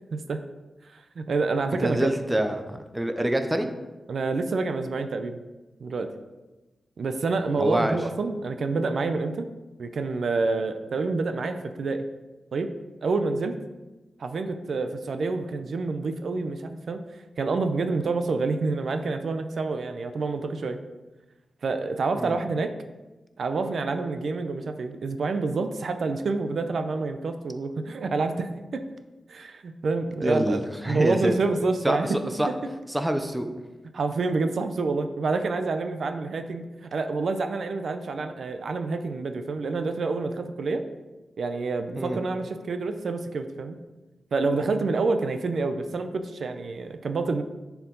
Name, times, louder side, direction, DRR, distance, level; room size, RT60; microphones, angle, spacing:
voice 1, 0.1-0.4 0.9-2.1 4.1-5.4 5.8-6.1 7.0-9.5 9.8-12.1 12.5-12.7 13.0-13.6 14.2-17.0 17.4-20.8 21.6-22.7 23.4-28.9 29.3-30.6 30.9-32.3 33.9-40.9 41.4-43.8 44.3-47.4, right 3 dB, 65° right, 8 dB, 0.5 m, -28 dB
voice 2, 1.8-3.7 7.6-8.0 22.2-22.4 30.2-31.3 31.8-32.5 32.9-33.5 42.0-42.2, right 1 dB, 5° right, 7 dB, 0.5 m, -26 dB
10.5 x 4.7 x 3.8 m, 1.1 s
wide cardioid pair, 150°, 0 cm